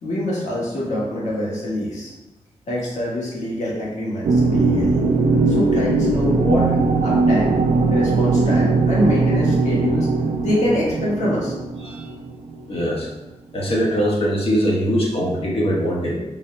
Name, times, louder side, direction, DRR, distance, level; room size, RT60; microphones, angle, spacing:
voice 1, 0.0-2.1 2.7-5.0 5.5-6.7 7.0-7.5 7.9-10.1 10.4-11.5, left 1 dB, 80° left, -6 dB, 1.3 m, -24 dB
sound 1, 4.2-12.8, right 3 dB, 70° right, 0.4 m, -19 dB
voice 2, 12.7-13.1 13.5-16.2, equal, 55° left, -4 dB, 1.0 m, -21 dB
4.0 x 2.1 x 3.8 m, 1.0 s
wide cardioid pair, 95°, 12 cm